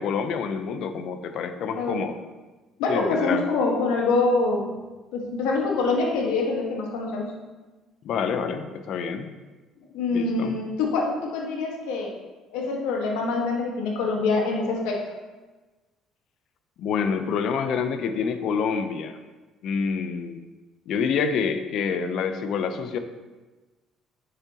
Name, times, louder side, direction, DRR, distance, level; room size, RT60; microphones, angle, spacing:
voice 1, 0.0-2.2 2.9-3.4 8.0-9.3 10.1-10.6 16.8-19.2 19.6-20.4 20.9-23.0, left 6 dB, 70° left, 9 dB, 0.8 m, -27 dB
voice 2, 2.8-4.7 5.1-7.3 9.9-12.1 12.5-15.0, left 3 dB, 85° left, -1 dB, 1.7 m, -25 dB
8.8 x 6.9 x 3.0 m, 1.2 s
supercardioid pair, 80°, 0 cm